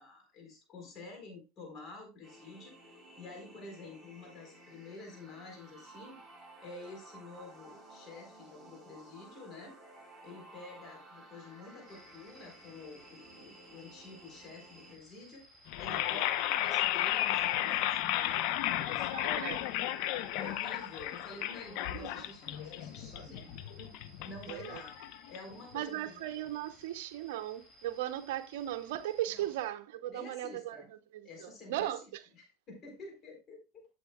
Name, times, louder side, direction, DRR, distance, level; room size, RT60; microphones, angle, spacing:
voice 1, 0.0-6.2 6.6-9.8 10.2-15.5 15.8-19.3 20.1-23.9 24.2-24.9 25.3-26.2 29.3-29.5 30.1-30.9 31.2-32.0 32.4-33.9, left 2 dB, 40° left, 4.1 m, -49 dB
sound 1, 2.2-15.0, right 2 dB, 5° right, 4.6 m, -55 dB
sound 2, 11.9-29.7, equal, 10° left, 2.6 m, -60 dB
sound 3, 15.7-25.7, left 13 dB, 60° left, 0.8 m, -33 dB
voice 2, 19.1-19.7 21.9-22.1 24.5-24.8 25.7-32.2, right 13 dB, 75° right, 0.7 m, -37 dB
11.5 x 7.9 x 2.3 m
supercardioid pair, 110°, 0 cm